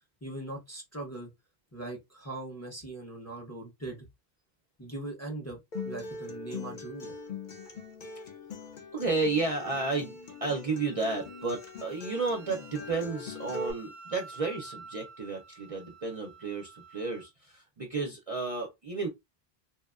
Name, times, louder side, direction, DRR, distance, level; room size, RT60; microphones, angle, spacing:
voice 1, 0.2-1.3 1.7-4.1 4.8-7.1, right 2 dB, 20° left, 0.5 m, -40 dB
Acoustic guitar, 5.7-13.7, left 4 dB, 55° left, 0.7 m, -42 dB
voice 2, 8.9-19.1, right 3 dB, 45° right, 0.5 m, -32 dB
Wind instrument woodwind instrument, 9.1-17.3, right 4 dB, 90° right, 0.8 m, -52 dB
2.8 x 2.1 x 2.3 m
omnidirectional pair, 1.0 m